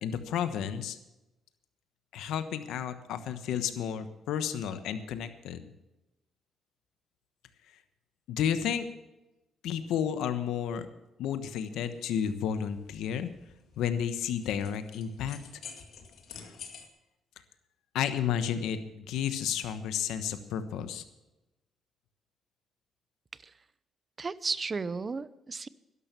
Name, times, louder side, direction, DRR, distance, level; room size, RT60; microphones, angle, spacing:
voice 1, 0.0-1.0 2.1-5.7 8.3-8.9 9.6-10.9 11.2-13.3 13.8-15.4 16.4-16.5 17.9-21.0, left 8 dB, 85° left, 10 dB, 1.1 m, -32 dB
sound 1, 11.7-16.9, left 6 dB, 70° left, 2.3 m, -50 dB
voice 2, 24.2-25.7, right 4 dB, 35° right, 17 dB, 0.7 m, -34 dB
12.5 x 11.0 x 7.0 m, 0.96 s
cardioid pair, 90°, 0 cm